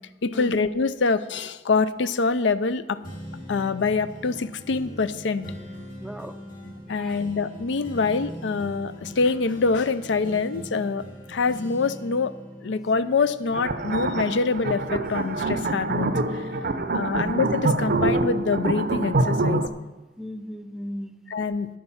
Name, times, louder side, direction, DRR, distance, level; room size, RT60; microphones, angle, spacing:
voice 1, 0.2-3.0 3.5-5.4 6.9-11.0 11.3-12.3 12.6-16.5 16.9-19.7 21.3-21.7, left 4 dB, 75° left, 14 dB, 0.5 m, -25 dB
sound 1, 3.0-14.7 15.0-16.9 17.4-17.5, equal, 50° left, 3.6 m, -41 dB
voice 2, 6.0-6.4 6.9-7.2 16.6-17.3 20.2-21.2, equal, ahead, 9 dB, 0.4 m, -37 dB
sound 2, 13.5-19.7, right 2 dB, 55° right, 0.6 m, -25 dB
10.5 x 8.6 x 5.7 m, 1.2 s
head